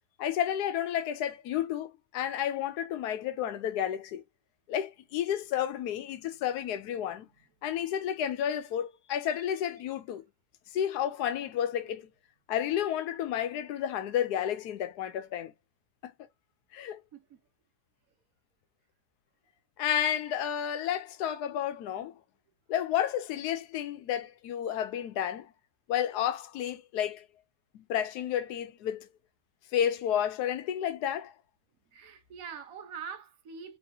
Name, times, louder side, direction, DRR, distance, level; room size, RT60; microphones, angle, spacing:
voice 1, 0.2-4.2 4.7-7.3 7.6-10.2 10.7-12.1 12.5-15.5 16.7-17.0 19.8-22.2 22.7-25.5 25.9-27.3 27.7-29.1 29.7-31.3, left 10 dB, 85° left, 1.2 m, -31 dB
voice 2, 31.9-33.8, right 6 dB, 65° right, 1.3 m, -43 dB
4.1 x 3.0 x 2.7 m
omnidirectional pair, 1.6 m